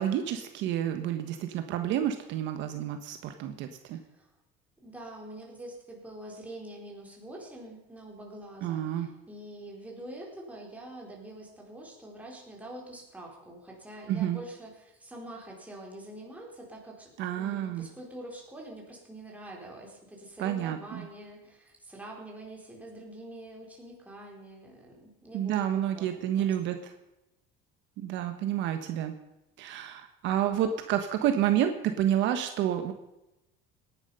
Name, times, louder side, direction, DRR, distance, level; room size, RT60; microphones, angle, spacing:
voice 1, 0.0-4.0 8.6-9.1 14.1-14.4 17.2-17.9 20.4-21.0 25.3-26.9 28.0-29.1 29.6-32.9, right 10 dB, 60° right, 7 dB, 1.3 m, -29 dB
voice 2, 3.9-4.3 4.8-26.8, right 1 dB, 5° right, -2 dB, 4.2 m, -45 dB
18.0 x 11.0 x 5.5 m, 0.92 s
cardioid pair, 140°, 21 cm